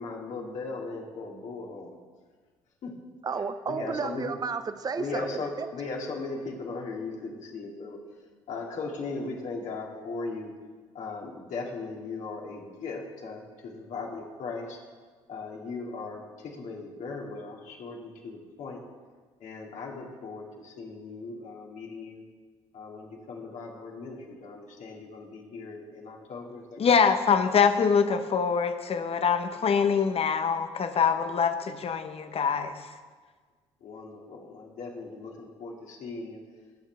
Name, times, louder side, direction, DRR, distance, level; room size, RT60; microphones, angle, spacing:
voice 1, 0.0-2.0 2.8-3.0 3.7-4.3 5.0-8.0 8.5-10.5 10.9-14.8 15.3-18.8 19.4-22.2 22.7-27.1 33.8-36.4, left 3 dB, 60° left, -1 dB, 2.5 m, -38 dB
voice 2, 3.2-5.7, right 5 dB, 30° right, 11 dB, 0.6 m, -32 dB
voice 3, 26.8-32.9, left 6 dB, 45° left, 9 dB, 1.1 m, -24 dB
19.5 x 7.5 x 3.5 m, 1.5 s
hypercardioid pair, 50°, 14 cm